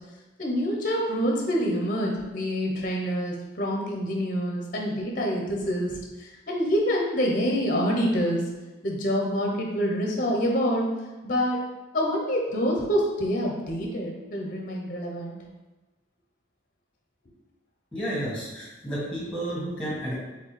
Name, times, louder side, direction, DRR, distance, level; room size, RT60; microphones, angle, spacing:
voice 1, 0.4-8.4 8.8-10.9 11.2-11.7 11.9-15.4, equal, 45° left, 0 dB, 0.7 m, -26 dB
voice 2, 17.9-20.1, right 1 dB, 5° left, -6 dB, 1.5 m, -31 dB
4.5 x 3.7 x 3.2 m, 1.1 s
head